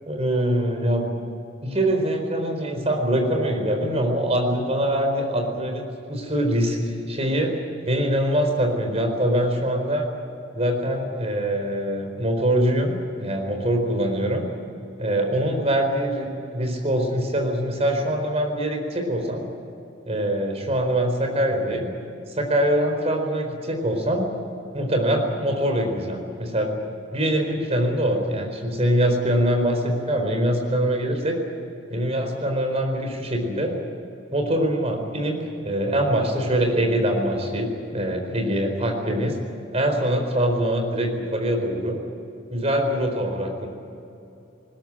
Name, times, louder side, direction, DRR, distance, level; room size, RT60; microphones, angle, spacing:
voice 1, 0.1-1.1 1.6-7.5 7.9-10.1 10.5-14.4 15.0-19.4 20.1-21.9 22.4-24.2 24.7-26.7 27.1-31.4 31.9-33.7 34.3-39.4 39.7-42.0 42.5-43.7, right 1 dB, 35° right, 3 dB, 4.5 m, -23 dB
20.5 x 20.5 x 9.0 m, 2.8 s
head